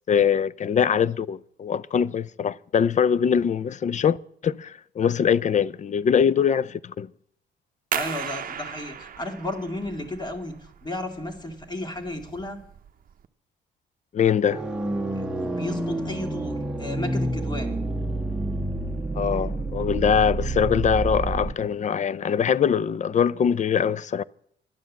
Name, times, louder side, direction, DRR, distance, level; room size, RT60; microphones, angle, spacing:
voice 1, 0.1-4.2 4.4-7.1 14.1-14.6 19.1-24.2, left 7 dB, 40° left, 0.4 m, -22 dB
voice 2, 7.9-12.6 15.1-17.8, left 1 dB, 20° left, 2.2 m, -33 dB
sound 1, 7.9-13.3, right 8 dB, 45° right, 0.8 m, -36 dB
sound 2, 14.5-21.5, right 2 dB, 5° right, 1.3 m, -28 dB
11.0 x 9.3 x 7.3 m
cardioid pair, 90°, 20 cm